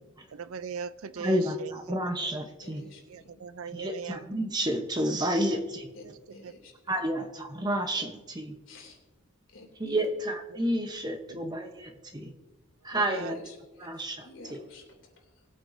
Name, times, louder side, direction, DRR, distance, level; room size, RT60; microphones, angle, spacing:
voice 1, 0.3-2.3 3.1-4.2 5.1-5.6 6.0-6.5 8.0-8.1 10.5-10.6 11.3-11.5 12.9-13.4, right 6 dB, 80° right, 15 dB, 0.5 m, -40 dB
voice 2, 1.2-2.8 3.7-5.9 6.9-8.5 9.8-12.4 12.8-13.4 13.8-14.6, right 1 dB, 20° right, 4 dB, 0.9 m, -30 dB
voice 3, 2.6-3.3 5.9-6.0 6.3-6.7 8.7-9.0 9.5-10.1 13.1-15.5, left 3 dB, 65° left, 0 dB, 3.0 m, -50 dB
20.5 x 8.7 x 2.7 m, 1.2 s
head